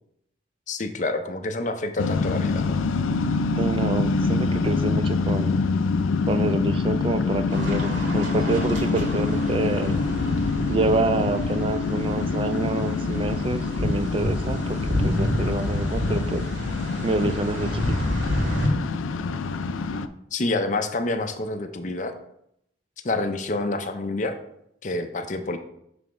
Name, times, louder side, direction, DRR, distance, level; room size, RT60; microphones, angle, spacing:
voice 1, 0.7-2.8 20.3-22.1 23.0-24.4 24.8-25.6, left 2 dB, 40° left, 7 dB, 0.5 m, -28 dB
sound 1, 2.0-20.1, left 4 dB, 85° left, 0.4 m, -26 dB
voice 2, 3.6-5.6 6.3-10.0 10.7-16.5 17.0-18.0, right 2 dB, 25° right, 10 dB, 0.3 m, -27 dB
sound 2, 7.5-18.7, equal, 75° right, 2.0 m, -29 dB
7.1 x 3.4 x 5.0 m, 0.77 s
head